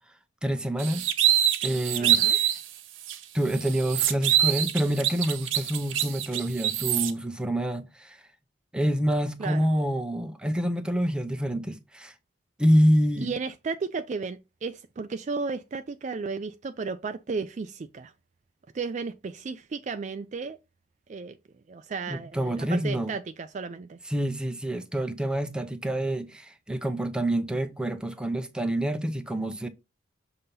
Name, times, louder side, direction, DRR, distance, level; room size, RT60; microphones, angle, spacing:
voice 1, 0.4-1.1 1.6-2.4 3.3-8.2 8.7-12.1 12.6-13.3 22.1-23.1 24.1-29.7, equal, 5° right, 0.7 m, -27 dB
sound 1, 0.8-2.6 3.1-3.2 3.5-7.1, right 11 dB, 85° right, 0.8 m, -25 dB
voice 2, 2.0-2.4 9.4-9.7 13.2-18.1 18.7-20.6 21.1-21.4 21.7-24.0, right 4 dB, 40° right, 0.3 m, -34 dB
6.8 x 2.8 x 5.3 m
head